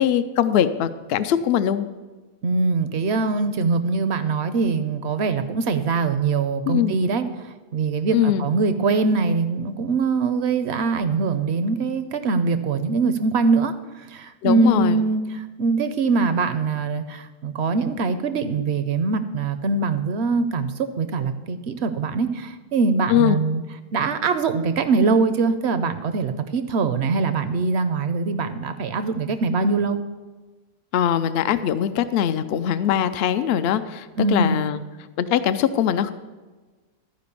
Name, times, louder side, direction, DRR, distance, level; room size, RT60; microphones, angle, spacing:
voice 1, 0.0-1.9 6.7-6.9 8.1-8.5 14.4-15.0 23.1-23.4 30.9-34.8 35.2-36.1, left 10 dB, 80° left, 11 dB, 0.5 m, -21 dB
voice 2, 2.4-7.3 7.7-23.6 23.9-30.0 34.2-34.6, right 4 dB, 65° right, 10 dB, 0.7 m, -23 dB
13.5 x 5.1 x 6.8 m, 1.3 s
omnidirectional pair, 1.6 m